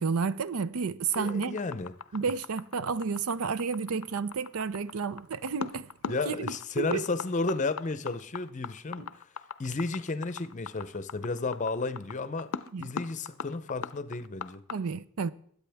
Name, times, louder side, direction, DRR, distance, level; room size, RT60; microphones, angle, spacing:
voice 1, 0.0-1.6 2.1-7.0 12.7-12.9 14.7-15.3, right 5 dB, 80° right, 0.5 m, -31 dB
sound 1, 1.1-14.8, left 6 dB, 75° left, 0.5 m, -39 dB
voice 2, 1.2-1.9 6.1-9.1 9.6-12.5 12.8-14.6, left 3 dB, 35° left, 0.6 m, -32 dB
22.0 x 8.3 x 3.5 m
head